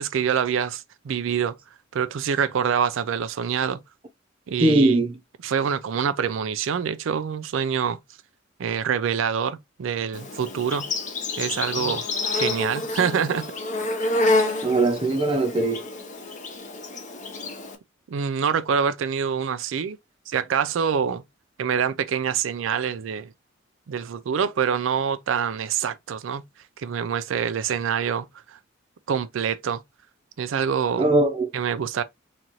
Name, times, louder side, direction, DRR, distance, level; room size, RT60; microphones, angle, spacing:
voice 1, 0.0-1.6 1.9-3.8 4.5-5.0 5.4-8.0 8.6-10.9 11.4-12.0 12.3-13.4 18.1-20.0 20.3-21.2 21.6-23.3 23.9-26.4 26.8-28.6 29.1-29.8 30.4-31.1 31.5-32.0, right 7 dB, 75° right, 0.4 m, -25 dB
voice 2, 4.6-5.1 11.8-12.0 14.6-15.8 31.0-31.5, right 2 dB, 25° right, 0.7 m, -20 dB
Insect, 10.1-17.7, left 2 dB, 40° left, 0.8 m, -28 dB
4.1 x 2.5 x 3.0 m
head